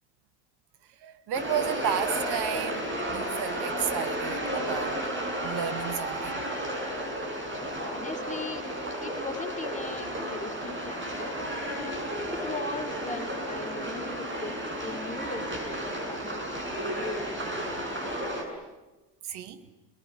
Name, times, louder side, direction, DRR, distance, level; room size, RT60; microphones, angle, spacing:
voice 1, 1.0-5.0 5.4-6.4 19.2-19.7, right 9 dB, 55° right, 2.2 m, -33 dB
sound 1, 1.3-18.4, equal, 25° right, 7.8 m, -33 dB
voice 2, 7.8-8.6 9.0-11.4 12.3-17.9, left 3 dB, 15° left, 3.6 m, -39 dB
28.0 x 21.5 x 9.9 m
hypercardioid pair, 70°, 48 cm